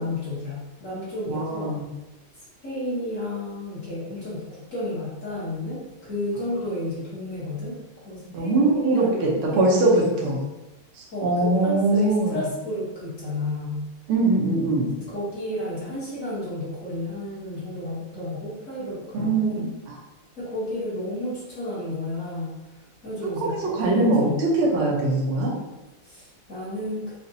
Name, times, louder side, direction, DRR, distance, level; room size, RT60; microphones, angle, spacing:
voice 1, 0.0-1.8 2.6-7.8 8.0-9.7 10.2-10.3 11.1-13.8 15.1-19.7 20.4-22.5 23.0-24.4 26.0-27.1, left 1 dB, 45° left, -9 dB, 1.5 m, -32 dB
voice 2, 1.3-1.8 8.3-10.4 11.0-12.4 14.1-14.9 19.1-19.7 23.2-25.5, right 2 dB, 80° right, -3 dB, 1.7 m, -22 dB
5.3 x 2.5 x 2.7 m, 1.0 s
omnidirectional pair, 2.3 m